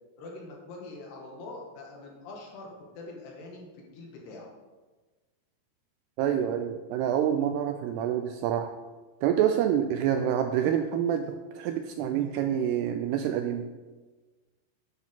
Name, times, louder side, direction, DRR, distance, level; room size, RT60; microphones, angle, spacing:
voice 1, 0.2-2.7 3.0-4.5, left 2 dB, 70° left, -2 dB, 3.8 m, -44 dB
voice 2, 6.2-8.7 9.2-13.7, right 9 dB, 85° right, 7 dB, 2.4 m, -27 dB
11.5 x 9.8 x 3.8 m, 1.3 s
omnidirectional pair, 5.2 m